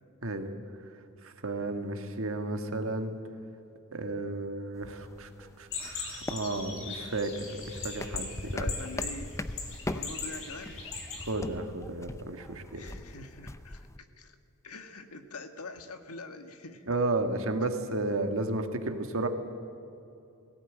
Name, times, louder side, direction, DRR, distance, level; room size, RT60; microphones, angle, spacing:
voice 1, 1.2-3.2 3.9-5.3 5.6-8.7 11.3-12.8 16.9-19.3, right 2 dB, 65° right, 6 dB, 1.7 m, -33 dB
sound 1, 4.7-14.0, left 1 dB, 15° left, 0.5 m, -41 dB
sound 2, 5.7-11.3, left 4 dB, 60° left, 3.5 m, -40 dB
voice 2, 8.5-9.4 9.9-10.9 12.7-13.9 14.2-14.4 14.6-17.0, left 3 dB, 80° left, 7 dB, 1.6 m, -44 dB
18.0 x 17.0 x 9.2 m, 2.6 s
head